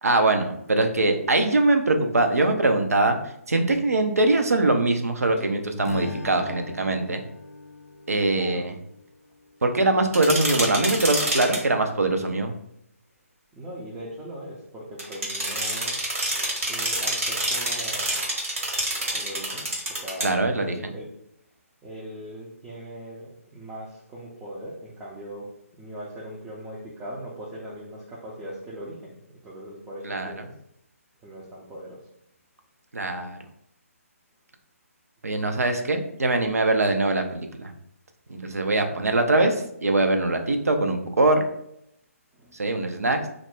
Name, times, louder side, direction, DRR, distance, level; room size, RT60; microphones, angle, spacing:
voice 1, 0.0-3.2 3.5-7.2 8.1-8.7 9.6-12.5 20.2-20.9 30.0-30.3 32.9-33.4 35.2-37.7 38.3-41.4 42.5-43.3, right 2 dB, 75° right, 5 dB, 0.5 m, -22 dB
Strum, 5.8-10.2, left 3 dB, 75° left, 0.4 m, -39 dB
voice 2, 8.3-8.6 13.5-16.0 16.7-18.2 19.0-21.1 21.8-25.5 25.8-29.2 29.4-30.5 31.2-32.1 38.3-38.4 42.3-42.7, right 1 dB, 10° right, -6 dB, 0.4 m, -40 dB
sound 1, 10.1-11.6 15.0-20.3, right 1 dB, 60° right, 1.1 m, -27 dB
2.4 x 2.1 x 3.4 m, 0.76 s
figure-of-eight pair, 140°, 8 cm